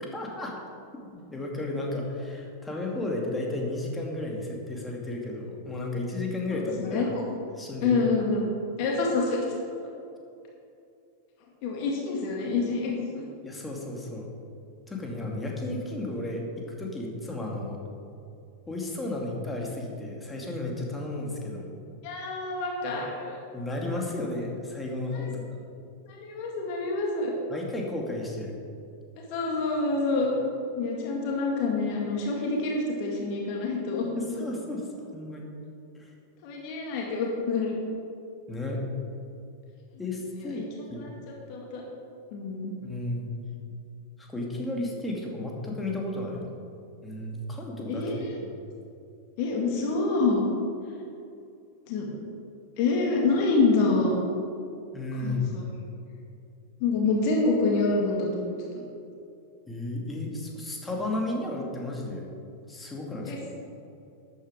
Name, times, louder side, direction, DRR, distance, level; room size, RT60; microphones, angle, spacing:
voice 1, 0.1-0.6 1.3-7.1 7.6-8.1 8.8-8.9 13.4-14.3 14.9-16.4 16.8-17.8 18.7-21.7 23.5-25.6 27.5-28.5 34.1-34.9 35.1-35.5 36.0-36.1 38.5-38.8 40.0-40.6 40.9-41.1 42.8-43.3 44.2-46.6 47.0-48.5 54.9-55.6 59.7-62.3 62.7-63.5, left 2 dB, 10° left, -1 dB, 2.4 m, -33 dB
voice 2, 6.5-7.2 7.8-8.4 8.8-9.4 11.6-13.2 22.0-23.4 25.1-25.3 26.1-27.3 29.3-30.3 30.7-34.4 36.4-37.8 40.4-40.7 41.0-41.1 41.5-41.8 42.3-42.8 47.9-48.3 49.4-50.5 51.9-52.1 52.8-54.2 55.2-55.7 56.8-58.8 63.3-63.4, left 3 dB, 45° left, -1 dB, 2.1 m, -27 dB
13.0 x 9.6 x 5.0 m, 2.6 s
figure-of-eight pair, 90°, 0 cm